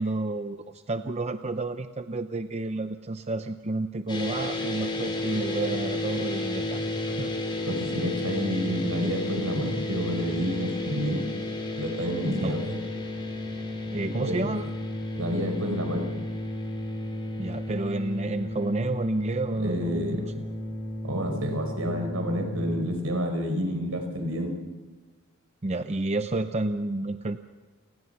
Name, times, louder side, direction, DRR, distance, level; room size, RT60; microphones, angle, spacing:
voice 1, 0.0-7.3 12.2-12.6 13.9-14.7 17.4-20.3 25.6-27.4, right 2 dB, 30° right, 9 dB, 0.7 m, -30 dB
sound 1, 4.1-22.8, left 1 dB, 25° left, 4.6 m, -32 dB
voice 2, 7.7-11.2 11.8-12.8 14.0-14.5 15.1-16.1 19.6-20.2 21.0-24.5, equal, 75° right, 4 dB, 5.0 m, -29 dB
29.5 x 19.5 x 5.8 m, 1.3 s
head